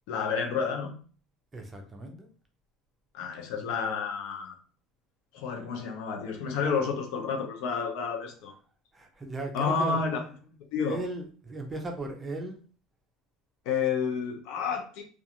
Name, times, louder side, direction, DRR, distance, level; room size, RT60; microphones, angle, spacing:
voice 1, 0.1-0.9 3.1-4.5 5.3-8.5 9.5-10.2 10.7-11.0 13.7-15.0, left 5 dB, 70° left, 4 dB, 0.6 m, -30 dB
voice 2, 1.5-2.3 8.9-10.0 10.8-12.6, right 2 dB, 20° right, 3 dB, 0.6 m, -37 dB
2.4 x 2.3 x 2.8 m, 0.40 s
supercardioid pair, 120°, 0 cm